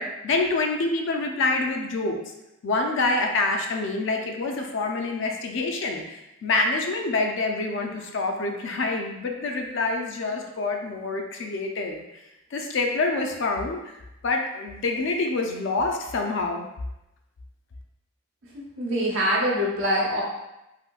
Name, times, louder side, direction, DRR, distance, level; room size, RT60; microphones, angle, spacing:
voice 1, 0.0-2.2 2.6-12.0 12.5-13.8 14.2-16.7, left 3 dB, 55° left, 2 dB, 0.4 m, -26 dB
voice 2, 18.5-20.2, equal, 65° right, -5 dB, 0.9 m, -24 dB
3.5 x 2.6 x 2.3 m, 0.93 s
head